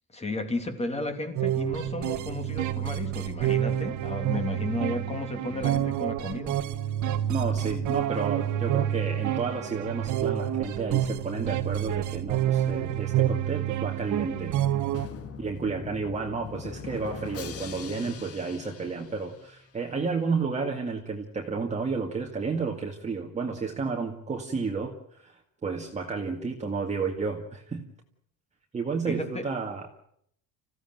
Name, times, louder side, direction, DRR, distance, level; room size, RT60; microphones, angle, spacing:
voice 1, 0.1-6.6 29.1-29.5, left 2 dB, 20° left, 6 dB, 3.1 m, -33 dB
sound 1, 1.4-15.1, right 11 dB, 60° right, 1.6 m, -28 dB
voice 2, 7.3-14.6 15.4-27.9 28.7-29.9, right 4 dB, 20° right, 1 dB, 2.0 m, -31 dB
Drum, 14.9-19.8, left 7 dB, 45° left, 2.1 m, -42 dB
27.0 x 16.0 x 9.3 m, 0.70 s
cardioid pair, 145°, 34 cm